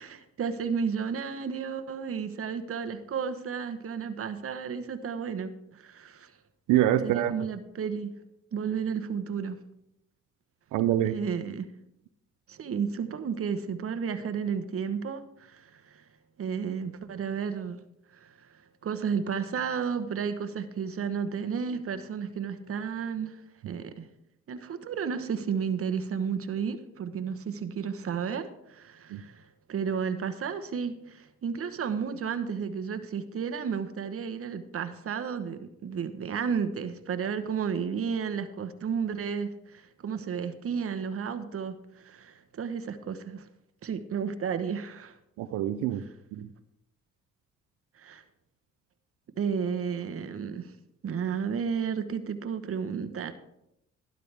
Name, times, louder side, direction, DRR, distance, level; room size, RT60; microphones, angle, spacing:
voice 1, 0.0-6.3 7.0-8.1 8.5-9.6 11.1-11.7 12.5-16.0 16.4-17.8 18.1-18.5 18.8-24.1 24.5-43.5 43.8-45.1 48.0-48.2 49.4-50.7 51.0-53.3, right 6 dB, 50° right, 9 dB, 1.1 m, -32 dB
voice 2, 6.7-7.3 10.7-11.2 29.1-29.2 45.4-46.0 46.3-46.5, right 13 dB, 90° right, 9 dB, 0.6 m, -25 dB
12.0 x 12.0 x 3.4 m, 0.83 s
cardioid pair, 90°, 30 cm